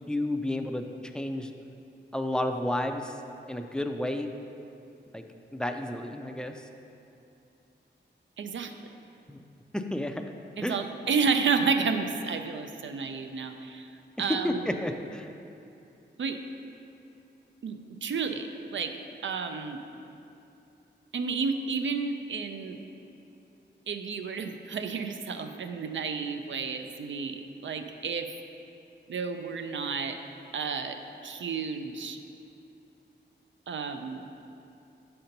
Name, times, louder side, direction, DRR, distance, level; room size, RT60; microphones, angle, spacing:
voice 1, 0.1-0.9 1.1-1.5 2.1-3.1 3.5-4.3 5.1-5.2 5.5-6.5 9.3-9.4 9.7-10.2 10.6-10.8 14.2-15.3, left 1 dB, 5° left, 5 dB, 0.3 m, -31 dB
voice 2, 8.4-8.7 10.6-13.9 14.2-14.7 16.2-16.4 17.6-18.9 19.2-19.8 21.1-22.8 23.9-28.3 29.1-30.2 30.5-32.2 33.7-34.2, right 5 dB, 80° right, 7 dB, 0.4 m, -31 dB
6.5 x 4.3 x 5.2 m, 2.7 s
wide cardioid pair, 110°, 19 cm